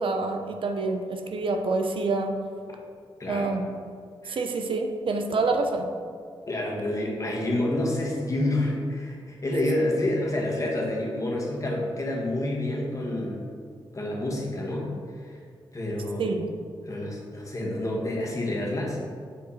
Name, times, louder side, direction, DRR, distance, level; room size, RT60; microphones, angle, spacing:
voice 1, 0.0-2.3 3.3-3.6 4.3-5.8 16.2-16.5, right 3 dB, 65° right, 4 dB, 0.7 m, -27 dB
voice 2, 3.2-3.5 4.2-4.4 6.5-13.4 13.9-14.9 15.2-15.4 15.7-16.3 16.8-19.0, left 1 dB, 35° left, -2 dB, 1.6 m, -28 dB
7.2 x 4.7 x 4.2 m, 2.1 s
cardioid pair, 70°, 10 cm